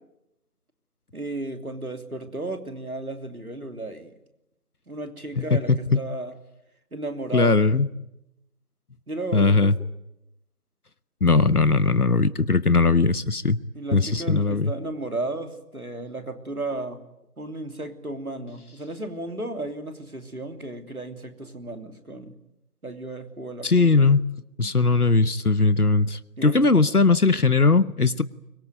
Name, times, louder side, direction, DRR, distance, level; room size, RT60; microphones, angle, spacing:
voice 1, 1.1-4.1 4.9-6.3 6.9-7.6 9.1-9.9 13.7-17.0 17.4-22.4 22.8-24.1 26.4-26.9, right 2 dB, 65° right, 6 dB, 3.1 m, -34 dB
voice 2, 5.4-6.0 7.3-7.9 9.3-9.7 11.2-13.6 13.9-14.7 23.6-24.3 24.6-28.2, left 3 dB, 70° left, 15 dB, 1.3 m, -19 dB
24.5 x 22.5 x 9.4 m, 0.88 s
figure-of-eight pair, 175°, 46 cm